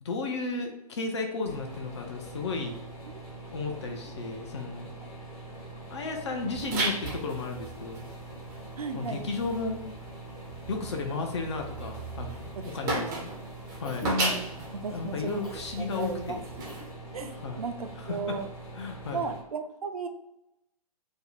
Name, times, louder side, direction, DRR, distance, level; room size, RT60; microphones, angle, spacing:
voice 1, 0.0-2.7 3.5-4.9 5.9-8.1 8.9-9.8 10.7-13.3 13.7-14.1 14.9-16.4 17.4-17.6 18.0-18.4 18.8-19.2, left 3 dB, 45° left, 3 dB, 0.6 m, -34 dB
sound 1, 1.5-19.4, right 2 dB, 30° left, 1.0 m, -44 dB
sound 2, 6.5-16.9, right 2 dB, 15° right, 0.5 m, -36 dB
voice 2, 8.8-9.2 12.6-13.2 14.0-14.4 14.8-15.4 15.8-16.4 17.1-18.5 19.1-20.1, right 3 dB, 70° right, 7 dB, 0.4 m, -35 dB
Cough, 13.8-14.7 15.4-15.7 16.6-16.9 17.1-17.4, left 2 dB, 65° left, 1.0 m, -43 dB
2.6 x 2.1 x 3.9 m, 0.90 s
figure-of-eight pair, 125°, 20 cm